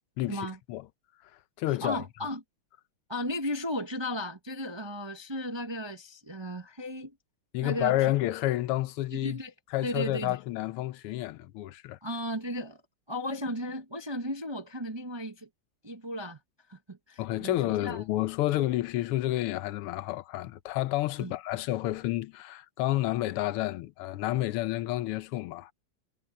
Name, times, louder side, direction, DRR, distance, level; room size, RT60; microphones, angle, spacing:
voice 1, 0.2-0.8 1.6-2.0 7.5-9.4 9.7-12.0 17.2-25.7, left 15 dB, 90° left, 1.6 m, -30 dB
voice 2, 1.8-2.4 3.1-7.1 7.6-8.1 9.1-9.5 9.8-10.4 12.0-12.8 13.1-15.5 15.8-16.4 16.7-18.0 21.2-21.3, left 1 dB, 25° right, 0.6 m, -35 dB
omnidirectional pair, 2.4 m